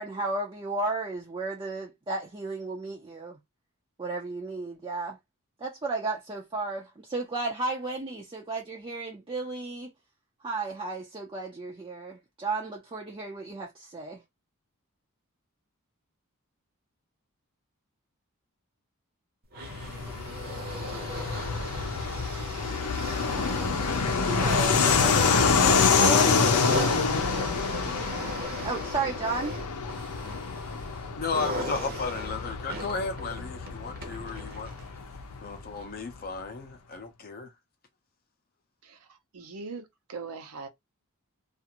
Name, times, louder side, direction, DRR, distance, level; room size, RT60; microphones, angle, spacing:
voice 1, 0.0-3.4 4.0-5.2 5.6-9.9 10.4-14.2 24.2-26.6 28.6-29.6, right 3 dB, 25° right, 0.5 m, -33 dB
sound 1, 19.5-35.0 35.8-35.9, right 1 dB, 45° right, 0.8 m, -38 dB
Fixed-wing aircraft airplane, 19.6-35.8, left 5 dB, 90° left, 0.6 m, -27 dB
voice 2, 31.2-34.7 35.4-37.5, left 4 dB, 45° left, 0.6 m, -34 dB
voice 3, 38.8-40.7, right 4 dB, 75° right, 0.7 m, -41 dB
2.5 x 2.4 x 2.8 m
head